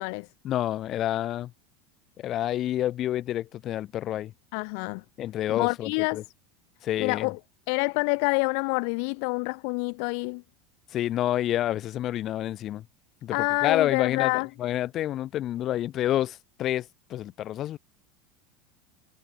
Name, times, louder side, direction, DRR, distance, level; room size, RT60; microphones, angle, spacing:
voice 1, 0.4-1.5 2.2-4.3 5.2-6.2 6.8-7.3 10.9-12.8 13.2-17.8, left 12 dB, 45° left, 1.5 m, -28 dB
voice 2, 4.5-5.0 5.5-6.2 7.0-7.4 7.7-10.4 13.3-14.5, left 39 dB, 65° left, 0.8 m, -27 dB
supercardioid pair, 110°, 0 cm